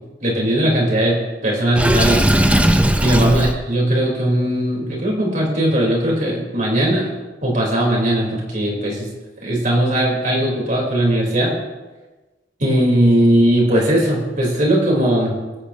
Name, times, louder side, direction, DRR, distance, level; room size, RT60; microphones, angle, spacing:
voice 1, 0.2-2.3 3.0-7.1 7.4-9.1 9.4-11.5 12.6-15.3, right 1 dB, 50° right, -2 dB, 3.6 m, -18 dB
Water / Sink (filling or washing), 1.8-3.5, right 1 dB, 10° right, 0.6 m, -16 dB
22.5 x 8.6 x 2.8 m, 1.2 s
head